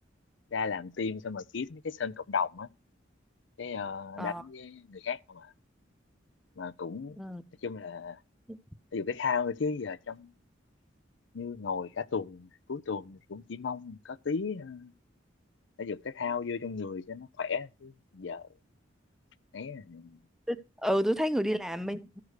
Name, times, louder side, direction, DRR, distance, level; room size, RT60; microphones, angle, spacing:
voice 1, 0.5-2.7 3.6-5.5 6.6-7.2 7.6-8.2 8.9-10.3 11.3-14.9 15.8-18.5 19.5-20.2, left 5 dB, 70° left, 0.6 m, -35 dB
voice 2, 20.8-22.2, equal, ahead, 0.6 m, -30 dB
13.5 x 4.9 x 6.4 m
head